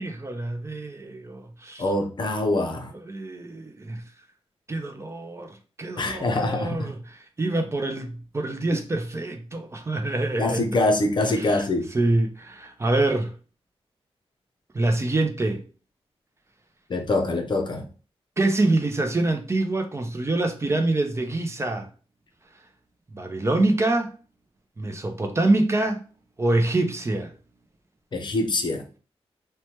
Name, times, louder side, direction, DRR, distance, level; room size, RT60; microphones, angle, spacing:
voice 1, 0.0-1.8 3.1-4.0 4.7-10.7 11.3-11.6 11.9-13.3 14.7-15.6 18.4-21.9 23.1-24.1 24.8-26.0 26.4-27.3, right 2 dB, 25° right, 0.5 m, -25 dB
voice 2, 1.8-2.9 6.0-6.9 8.7-8.8 10.4-11.9 16.9-17.9 28.1-28.9, left 2 dB, 45° left, 0.5 m, -24 dB
3.0 x 2.2 x 2.9 m
wide cardioid pair, 95°, 11 cm